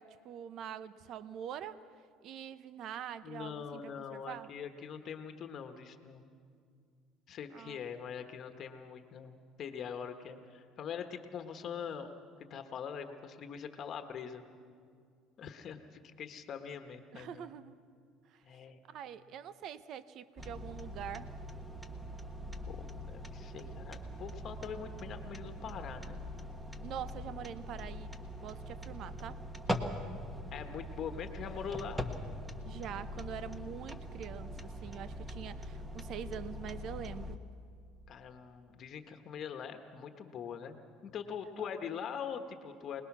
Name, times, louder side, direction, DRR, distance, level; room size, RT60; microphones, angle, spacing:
voice 1, 0.0-1.8 2.2-4.5 7.5-7.8 17.1-17.7 18.3-18.4 18.9-21.3 26.8-28.1 28.4-29.4 32.6-37.4, right 9 dB, 55° right, 14 dB, 0.8 m, -44 dB
voice 2, 3.2-6.2 7.3-12.1 12.5-14.4 15.4-17.5 18.4-18.8 22.7-26.2 30.5-32.1 38.1-40.8 41.0-43.0, left 7 dB, 45° left, 6 dB, 1.3 m, -43 dB
sound 1, 20.4-37.4, equal, 10° right, 1.5 m, -42 dB
26.0 x 20.0 x 6.2 m, 2.2 s
supercardioid pair, 110°, 0 cm